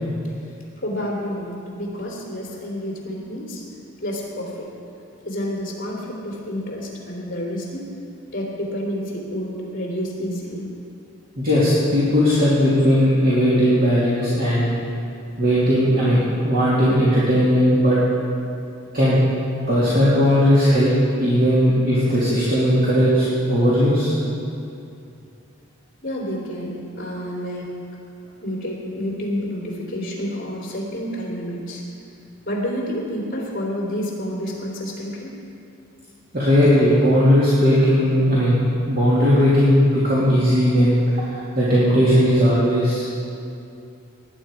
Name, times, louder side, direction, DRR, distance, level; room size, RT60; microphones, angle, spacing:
voice 1, 0.8-3.6 4.0-4.7 5.2-7.9 8.3-10.7 26.0-27.7 28.4-31.8 32.4-35.3, equal, 40° left, -3 dB, 3.1 m, -29 dB
voice 2, 11.4-14.7 15.4-18.0 18.9-19.2 19.7-20.9 21.2-24.2 36.3-38.6 38.9-43.1, equal, 45° right, -10 dB, 2.8 m, -17 dB
19.0 x 9.7 x 4.9 m, 2.6 s
head